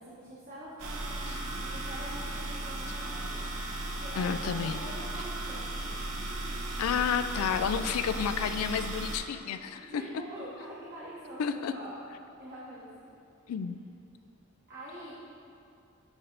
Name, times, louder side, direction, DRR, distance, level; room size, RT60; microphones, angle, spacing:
voice 1, 0.0-3.5 4.0-5.9 9.7-12.0 12.4-13.1 14.7-15.1, equal, 50° right, -9 dB, 1.1 m, -45 dB
sound 1, 0.8-9.2, right 2 dB, 85° right, 0.7 m, -36 dB
voice 2, 4.2-4.8 6.8-10.0 11.4-11.7 13.5-13.8, left 7 dB, 80° left, 10 dB, 0.3 m, -30 dB
9.7 x 3.3 x 3.9 m, 2.5 s
head